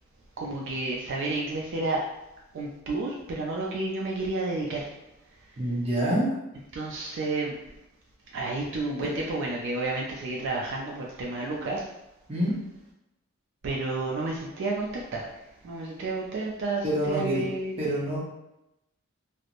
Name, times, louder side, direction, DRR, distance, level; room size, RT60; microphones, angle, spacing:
voice 1, 0.4-2.0 2.5-4.9 6.7-7.6 8.3-11.9 13.6-17.7, right 2 dB, 60° right, -2 dB, 0.3 m, -31 dB
voice 2, 5.6-6.3 12.3-12.5 16.8-17.4 17.8-18.2, right 1 dB, 30° right, -5 dB, 0.6 m, -26 dB
2.9 x 2.0 x 2.4 m, 0.88 s
head